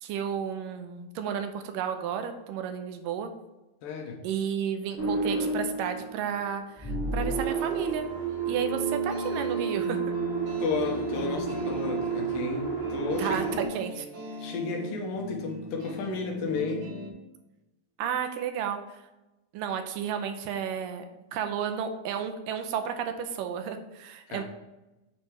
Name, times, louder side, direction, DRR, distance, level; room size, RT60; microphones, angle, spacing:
voice 1, 0.0-3.3 4.2-8.1 8.5-10.1 13.2-13.4 13.7-14.1 18.0-19.0 19.5-21.1 21.3-24.4, right 8 dB, 80° right, 7 dB, 2.3 m, -32 dB
voice 2, 3.8-4.2 10.6-13.7 14.4-16.9 24.3-24.4, left 4 dB, 80° left, 2 dB, 2.8 m, -33 dB
sound 1, 5.0-6.4 6.8-13.6, right 5 dB, 10° right, 1.6 m, -31 dB
sound 2, 8.3-17.1, left 2 dB, 50° right, 2.8 m, -39 dB
8.7 x 4.6 x 4.5 m, 1.0 s
omnidirectional pair, 3.9 m